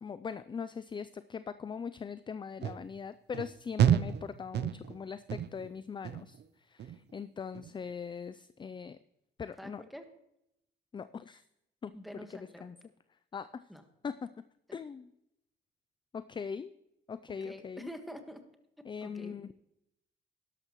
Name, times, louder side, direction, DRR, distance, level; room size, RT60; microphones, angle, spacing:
voice 1, 0.0-9.0 9.4-9.8 10.9-11.4 11.8-11.9 12.3-12.8 13.3-13.6 14.0-14.3 14.7-15.1 16.1-16.7 17.1-17.9 18.9-19.5, left 6 dB, 25° left, 14 dB, 0.4 m, -41 dB
sound 1, 2.6-2.8 3.3-3.5 3.8-4.2 4.5-5.0 5.3-5.7 6.0-6.4 6.8-7.2 7.5-7.7, right 9 dB, 60° right, 0.6 m, -29 dB
voice 2, 9.6-10.1 11.9-12.7 13.7-13.8 17.4-18.4 19.0-19.5, equal, ahead, 6 dB, 1.5 m, -46 dB
12.0 x 11.5 x 3.0 m, 0.82 s
cardioid pair, 90°, 20 cm